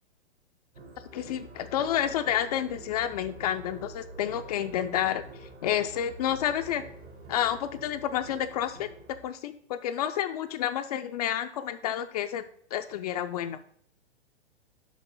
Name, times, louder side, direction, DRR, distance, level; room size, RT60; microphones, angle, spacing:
sound 1, 0.7-9.2, right 1 dB, 65° right, 2.5 m, -47 dB
voice 1, 1.1-6.8 7.3-8.9 9.2-12.4 12.7-13.6, left 10 dB, 35° left, 8 dB, 0.4 m, -30 dB
6.1 x 5.7 x 5.5 m, 0.64 s
figure-of-eight pair, 110°, 34 cm